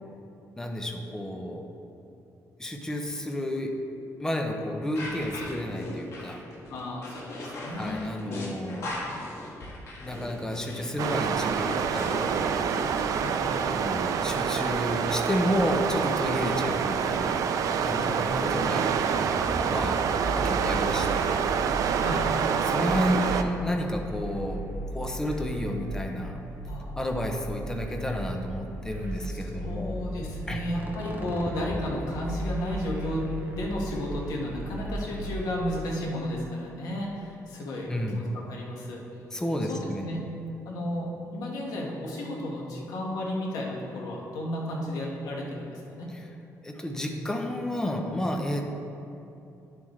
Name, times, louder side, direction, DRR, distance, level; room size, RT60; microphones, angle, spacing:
voice 1, 0.6-1.7 2.6-3.7 4.2-6.4 7.7-9.2 10.0-12.7 13.6-17.5 17.8-18.9 19.7-20.0 20.3-21.4 22.6-24.6 24.9-26.4 27.0-29.9 30.5-30.6 37.9-38.2 39.3-40.1 46.6-48.7, left 1 dB, 10° left, 3 dB, 0.7 m, -31 dB
sound 1, 5.0-13.2, left 1 dB, 50° left, 1.6 m, -38 dB
voice 2, 6.7-8.5 13.2-13.8 18.0-18.8 22.0-22.3 26.6-26.9 29.3-39.0 39.7-40.2 40.6-46.1, left 1 dB, 80° left, -2 dB, 1.6 m, -33 dB
sound 2, 11.0-23.4, right 7 dB, 65° right, 0.4 m, -27 dB
sound 3, 19.0-35.8, right 1 dB, 30° right, 0.8 m, -37 dB
10.5 x 7.3 x 3.2 m, 2.8 s
cardioid pair, 160°, 6 cm